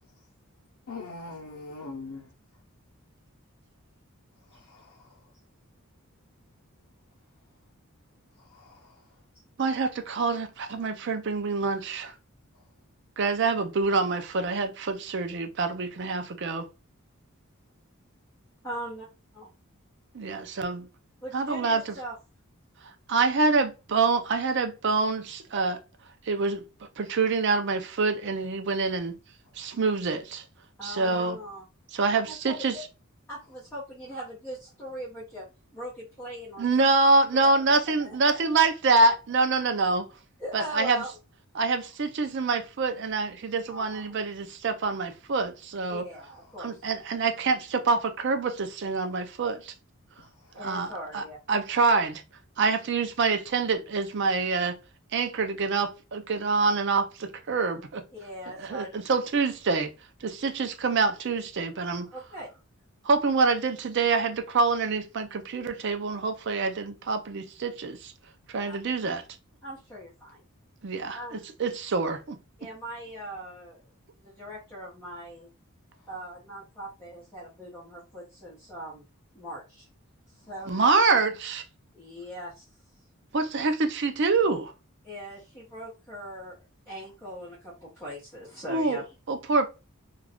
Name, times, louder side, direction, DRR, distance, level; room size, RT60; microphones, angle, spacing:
voice 1, 0.9-2.2 4.5-5.2 8.5-8.9 80.7-80.8, left 3 dB, 85° left, 0.6 m, -42 dB
voice 2, 9.6-12.1 13.2-16.7 20.1-20.9 21.3-22.0 22.8-25.8 26.2-26.6 27.0-29.1 29.6-30.4 30.8-31.4 31.9-32.8 36.6-40.1 40.5-41.0 41.6-46.0 46.6-49.7 50.6-52.2 52.6-54.8 55.1-58.0 58.6-59.9 60.2-62.1 63.0-68.1 68.5-69.2 70.8-72.4 80.7-81.6 83.3-84.7 88.7-89.0 89.3-89.7, right 4 dB, 55° right, 0.5 m, -26 dB
voice 3, 18.6-19.1 19.3-19.5 21.2-22.1 30.8-31.7 32.3-32.8 33.3-35.5 35.7-36.9 37.5-37.6 38.0-38.7 40.4-41.1 43.7-44.2 45.9-46.9 50.5-51.4 58.1-58.9 62.1-62.6 68.7-68.8 69.6-70.4 71.1-71.4 72.6-73.8 74.2-75.5 76.1-79.0 79.3-79.9 80.3-80.7 81.9-82.5 85.0-86.6 86.9-89.1, equal, 10° left, 0.9 m, -40 dB
2.4 x 2.3 x 3.4 m
head